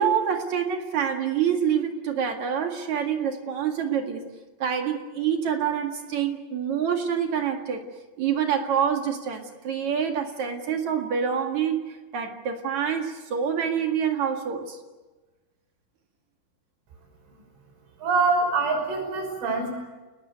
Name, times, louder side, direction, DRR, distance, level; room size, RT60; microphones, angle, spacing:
voice 1, 0.0-4.2 4.6-7.8 8.2-11.8 12.1-14.8, right 8 dB, 50° right, 4 dB, 2.5 m, -26 dB
voice 2, 18.0-19.7, right 4 dB, 80° right, 2 dB, 8.2 m, -24 dB
29.5 x 20.0 x 8.2 m, 1.2 s
omnidirectional pair, 5.6 m